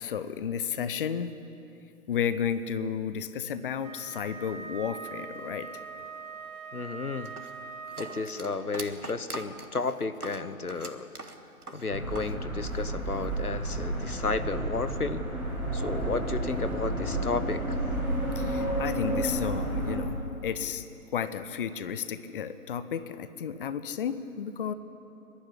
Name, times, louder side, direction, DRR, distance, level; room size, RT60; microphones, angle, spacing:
voice 1, 0.0-1.4 2.1-5.7 18.4-20.2 20.4-20.8 21.1-24.7, left 8 dB, 40° left, 13 dB, 0.8 m, -32 dB
Wind instrument woodwind instrument, 3.8-8.5, right 5 dB, 25° right, 1.4 m, -42 dB
voice 2, 6.7-7.3 8.0-11.1 11.7-15.2 15.7-17.8, left 4 dB, 85° left, 13 dB, 1.1 m, -33 dB
sound 1, 7.2-12.4 12.6-13.5, right 2 dB, 85° right, 1.8 m, -42 dB
sound 2, 11.9-20.0, right 1 dB, ahead, 0.4 m, -31 dB
24.0 x 11.5 x 9.9 m, 2.9 s
figure-of-eight pair, 130°, 44 cm